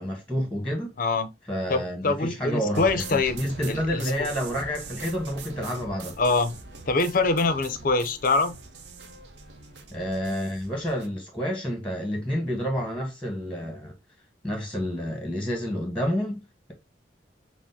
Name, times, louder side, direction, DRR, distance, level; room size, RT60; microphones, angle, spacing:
voice 1, 0.0-0.9 1.5-6.1 9.9-13.9 14.4-16.7, equal, 5° left, 1.1 m, -29 dB
voice 2, 1.0-1.3 1.7-3.4 3.7-4.0 6.2-6.5 6.9-8.6, left 3 dB, 50° left, 0.6 m, -24 dB
sound 1, 2.7-11.1, right 3 dB, 65° right, 0.7 m, -42 dB
6.0 x 2.1 x 2.7 m
head